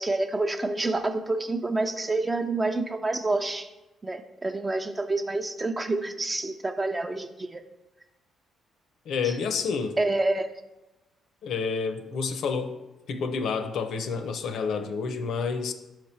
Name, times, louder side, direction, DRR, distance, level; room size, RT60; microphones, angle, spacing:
voice 1, 0.0-3.7 4.0-7.6 9.2-9.3 10.0-10.5, right 2 dB, 20° right, 8 dB, 0.5 m, -28 dB
voice 2, 9.1-10.0 11.4-12.7 13.1-15.7, left 5 dB, 70° left, 8 dB, 0.6 m, -29 dB
5.9 x 4.6 x 4.3 m, 1.0 s
cardioid pair, 90°, 0 cm